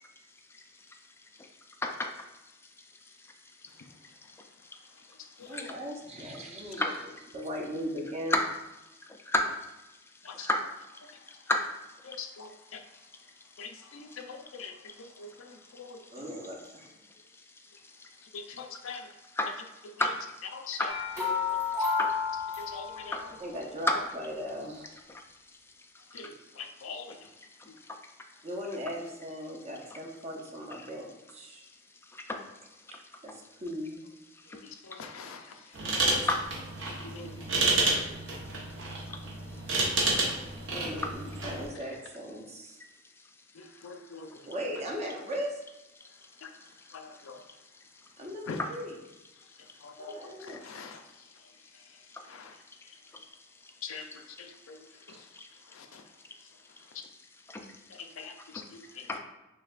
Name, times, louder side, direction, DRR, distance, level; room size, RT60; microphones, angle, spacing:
voice 1, 0.5-1.0 1.4-1.5 1.8-2.1 2.8-3.3 3.8-4.5 5.5-5.7 6.8-7.0 8.3-8.5 9.0-9.6 10.3-10.7 10.9-11.7 12.7-12.8 14.1-14.2 16.0-16.1 17.8-18.3 19.3-19.5 20.0-20.4 20.7-21.0 22.0-22.2 23.1-23.3 23.9-24.0 25.1-25.2 26.1-26.3 27.6-28.0 30.8-30.9 32.1-32.4 32.9-33.0 34.3-34.6 36.1-36.4 37.9-38.0 39.1-39.2 40.1-40.3 44.3-44.4 46.6-47.0 48.6-48.7 50.5-50.6 52.1-52.2 53.1-53.3 53.6-53.7 55.3-55.5 57.5-57.7 58.4-59.2, left 2 dB, 10° left, 4 dB, 0.3 m, -33 dB
voice 2, 5.5-6.9 7.3-8.4 10.4-10.5 16.1-16.9 23.4-25.0 28.4-31.6 33.2-34.1 40.7-42.8 44.4-45.6 48.2-49.0 50.0-50.6, equal, 35° right, 0 dB, 0.6 m, -38 dB
voice 3, 12.0-12.8 13.6-16.2 18.3-19.1 20.5-20.9 21.5-21.6 22.6-23.3 26.1-27.2 27.7-27.8 34.5-35.8 37.0-37.8 43.5-44.3 46.4-46.5 46.9-47.4 48.5-48.6 49.8-51.0 52.2-52.5 53.8-55.3 55.7-56.0 57.9-59.1, left 5 dB, 90° left, 5 dB, 0.4 m, -44 dB
sound 1, 20.9-23.4, left 5 dB, 15° right, 1.2 m, -31 dB
sound 2, 35.7-41.7, right 2 dB, 65° right, 0.9 m, -30 dB
6.3 x 2.2 x 2.4 m, 1.0 s
head